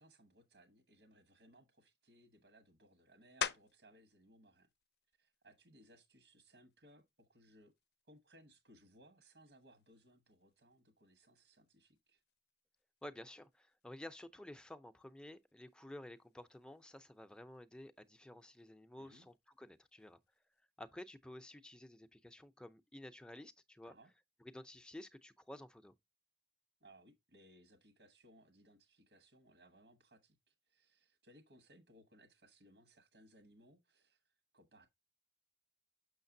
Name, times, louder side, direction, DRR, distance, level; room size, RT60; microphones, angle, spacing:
voice 1, 0.0-4.7 5.2-7.7 8.1-12.2 19.0-19.3 23.8-24.1 26.8-34.2 34.5-34.9, right 1 dB, 80° right, 1.2 m, -65 dB
sound 1, 3.4-4.0 4.6-9.0 9.5-14.7 14.9-20.6, left 7 dB, 60° left, 0.5 m, -50 dB
voice 2, 13.0-20.2 20.8-23.9 24.5-25.9, left 1 dB, 5° left, 0.5 m, -52 dB
6.5 x 6.5 x 2.6 m
head